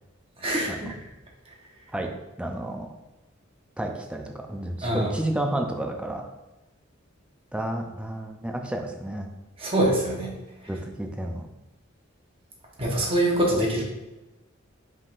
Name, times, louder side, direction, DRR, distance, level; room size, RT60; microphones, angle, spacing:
voice 1, 0.4-0.9 4.8-5.1 9.6-10.3 12.8-13.8, right 1 dB, 25° right, -2 dB, 1.0 m, -24 dB
voice 2, 2.4-2.9 3.8-6.2 7.5-9.3 10.7-11.5, right 1 dB, 5° right, 3 dB, 0.4 m, -31 dB
5.2 x 3.6 x 2.5 m, 1.0 s
head